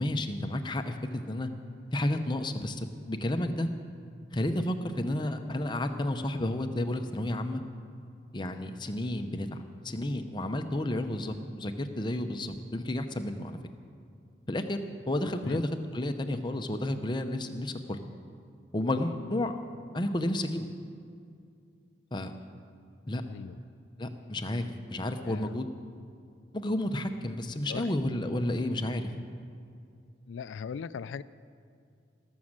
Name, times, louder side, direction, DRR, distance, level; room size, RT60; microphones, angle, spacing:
voice 1, 0.0-1.5 1.9-3.7 4.3-7.6 8.3-9.6 9.8-13.6 14.5-14.8 15.1-18.0 18.7-19.6 19.9-20.7 22.1-22.3 23.1-23.2 24.0-25.7 26.5-29.1, left 1 dB, 25° left, 7 dB, 0.7 m, -31 dB
voice 2, 23.3-23.6 25.2-25.6 27.7-27.9 30.3-31.2, left 6 dB, 85° left, 16 dB, 0.3 m, -39 dB
19.0 x 6.4 x 7.4 m, 2.4 s
head